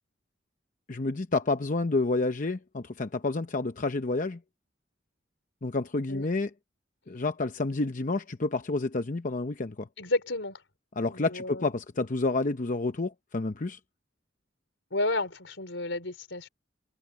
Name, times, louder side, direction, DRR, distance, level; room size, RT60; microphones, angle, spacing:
voice 1, 0.9-4.4 5.6-6.5 7.1-9.9 11.0-13.8, left 3 dB, 45° left, 0.8 m, -29 dB
voice 2, 10.0-10.6 11.1-11.7 14.9-16.5, left 2 dB, 80° left, 4.3 m, -31 dB
head